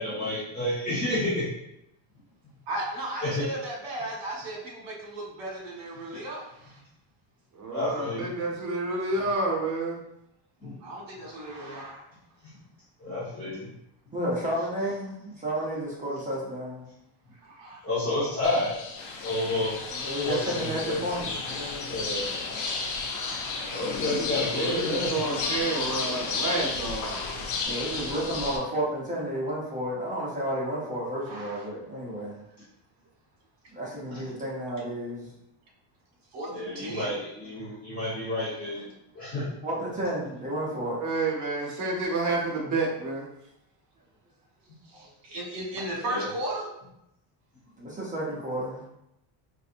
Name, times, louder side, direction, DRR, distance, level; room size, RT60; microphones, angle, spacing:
voice 1, 0.0-1.5 3.2-3.4 7.7-8.4 10.6-10.7 13.0-13.7 17.8-18.8 19.2-20.0 20.2-21.3 21.9-22.3 23.6-25.1 34.1-34.2 36.5-38.9 39.1-39.4 46.0-46.2, left 1 dB, 20° left, -13 dB, 1.0 m, -30 dB
voice 2, 2.7-6.8 10.6-12.0 17.3-17.9 23.4-23.7 25.9-26.1 31.3-31.7 36.3-37.2 44.8-46.7, right 1 dB, 60° right, -2 dB, 1.4 m, -36 dB
voice 3, 7.5-10.0 24.6-27.4 41.0-43.3, right 2 dB, 35° right, -1 dB, 0.9 m, -29 dB
voice 4, 14.1-16.9 19.9-22.0 27.6-32.4 33.7-35.3 39.6-41.0 47.8-48.8, equal, 15° right, -5 dB, 0.5 m, -31 dB
sound 1, 18.4-28.6, left 4 dB, 40° left, 0.4 m, -33 dB
sound 2, 19.0-27.6, left 3 dB, 90° left, 0.8 m, -44 dB
4.1 x 2.5 x 2.5 m, 0.84 s
cardioid pair, 160°, 49 cm